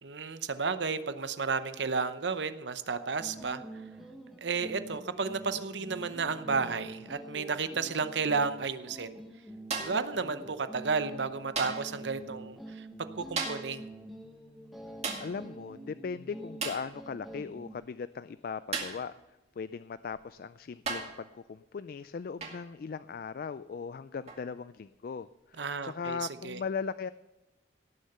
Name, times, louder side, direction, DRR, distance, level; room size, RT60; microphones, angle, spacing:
voice 1, 0.0-3.6 4.4-9.2 9.8-12.9 13.2-13.8 25.6-26.2 26.4-26.6, right 4 dB, 75° right, 11 dB, 0.8 m, -32 dB
sound 1, 3.2-17.7, right 1 dB, ahead, 1.3 m, -46 dB
sound 2, 9.7-10.1 11.6-12.0 13.4-13.8 15.0-15.4 16.6-16.9 18.7-19.1 20.1-20.2 20.9-21.2 22.4-22.7 24.3-24.5, right 4 dB, 35° right, 2.1 m, -35 dB
voice 2, 15.2-19.1 19.6-27.1, left 5 dB, 50° left, 14 dB, 0.3 m, -38 dB
17.5 x 6.6 x 6.8 m, 1.0 s
head